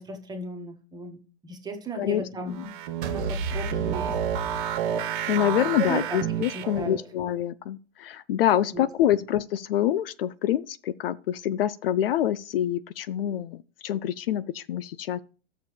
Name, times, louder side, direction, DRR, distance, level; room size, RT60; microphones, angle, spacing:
voice 1, 0.0-2.7 3.1-4.7 5.8-6.2 6.5-7.0 8.7-8.9, right 3 dB, 10° right, 1.6 m, -36 dB
voice 2, 2.0-2.6 5.3-15.2, left 11 dB, 55° left, 0.6 m, -26 dB
sound 1, 2.5-7.0, right 9 dB, 45° right, 1.4 m, -30 dB
sound 2, 3.0-5.4, right 3 dB, 75° right, 1.5 m, -32 dB
13.0 x 6.8 x 3.2 m
hypercardioid pair, 130°, 34 cm